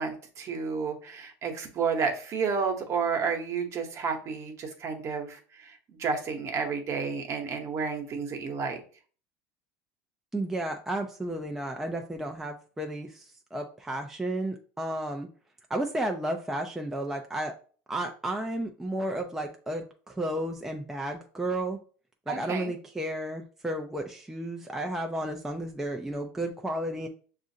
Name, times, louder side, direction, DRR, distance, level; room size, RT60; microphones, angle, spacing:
voice 1, 0.0-8.8 22.3-22.7, right 5 dB, 40° right, 4 dB, 1.0 m, -31 dB
voice 2, 10.3-15.3 15.7-17.5 17.9-21.8 22.3-27.1, right 1 dB, 5° right, 3 dB, 0.4 m, -33 dB
6.1 x 2.5 x 2.7 m, 0.41 s
supercardioid pair, 115°, 7 cm